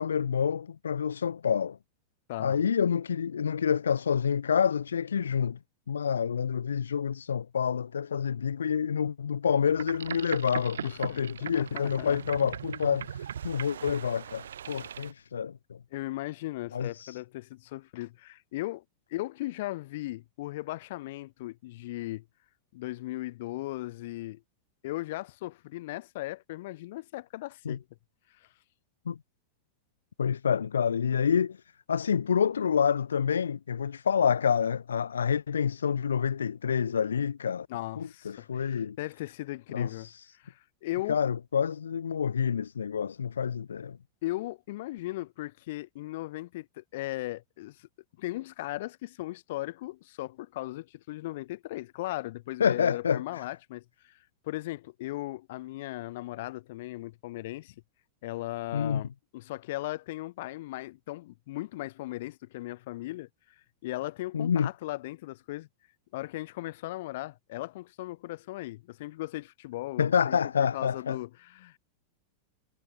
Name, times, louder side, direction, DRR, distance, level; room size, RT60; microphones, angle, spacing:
voice 1, 0.0-1.8 2.4-5.6 5.9-15.8 16.7-17.2 27.6-27.8 29.1-29.2 30.2-31.6 31.9-37.7 38.0-39.0 39.7-40.2 41.1-44.0 52.6-53.5 58.7-59.0 64.3-64.7 70.0-71.2, left 7 dB, 70° left, 1.1 m, -28 dB
voice 2, 2.3-2.6 10.8-11.2 11.5-12.2 15.9-18.8 19.1-22.2 22.7-24.4 24.8-27.8 37.7-40.1 40.4-41.2 44.2-47.9 48.2-54.2 54.4-57.7 58.2-63.3 63.8-65.7 66.1-70.4 70.7-71.8, left 17 dB, 55° left, 3.8 m, -37 dB
Boat Water vehicle, 9.7-15.1, right 8 dB, 65° right, 5.8 m, -39 dB
figure-of-eight pair, 90°, 0 cm